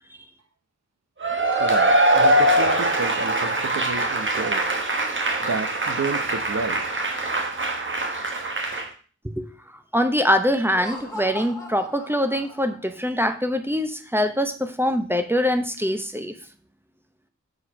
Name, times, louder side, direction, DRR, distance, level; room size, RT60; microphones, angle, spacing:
Cheering / Applause / Crowd, 1.2-8.9, right 1 dB, 40° right, 1.3 m, -22 dB
voice 1, 1.6-4.8 5.4-6.8, right 4 dB, 60° right, 9 dB, 0.9 m, -31 dB
voice 2, 9.9-16.3, equal, 10° right, 8 dB, 0.8 m, -23 dB
Laughter, 10.6-12.9, left 1 dB, 10° left, 2.3 m, -38 dB
6.5 x 4.5 x 5.0 m, 0.38 s
wide cardioid pair, 70°, 30 cm